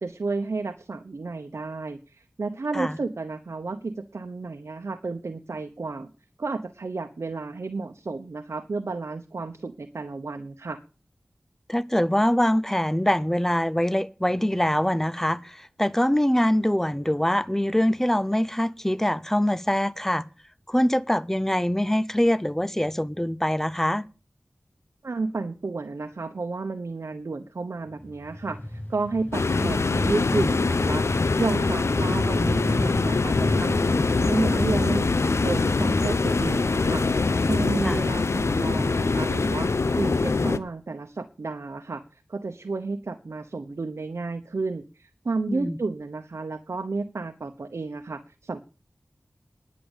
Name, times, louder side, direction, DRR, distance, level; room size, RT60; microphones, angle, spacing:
voice 1, 0.0-6.1 6.4-10.8 25.0-31.0 31.4-37.0 37.5-48.6, right 3 dB, 75° right, 0.9 m, -32 dB
voice 2, 11.7-20.3 20.7-24.0 37.8-38.0 45.5-45.8, equal, 10° left, 0.6 m, -24 dB
Engine, 27.8-35.8, left 1 dB, 45° left, 6.8 m, -35 dB
sound 1, 29.3-40.6, left 3 dB, 75° left, 0.7 m, -23 dB
10.5 x 8.5 x 7.1 m
wide cardioid pair, 45°, 5 cm